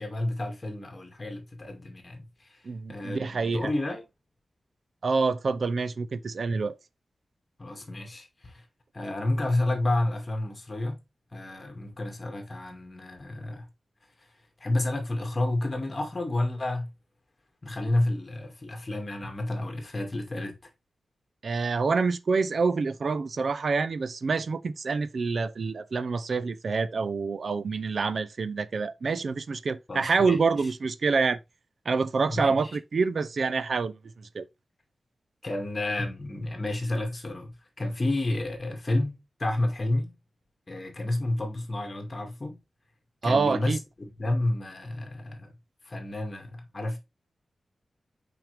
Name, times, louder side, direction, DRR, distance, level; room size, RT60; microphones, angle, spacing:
voice 1, 0.0-2.6 2.9-4.0 7.6-8.6 8.9-11.0 11.3-13.7 14.6-16.9 17.6-20.6 29.9-30.4 32.3-32.7 35.4-40.1 40.7-42.6 43.2-45.5 45.8-47.0, left 1 dB, 30° left, 2.1 m, -30 dB
voice 2, 2.6-3.7 5.0-6.8 21.4-31.4 31.9-34.5 43.2-43.8, right 4 dB, 60° right, 0.5 m, -27 dB
5.8 x 5.4 x 3.3 m
wide cardioid pair, 120°, 0 cm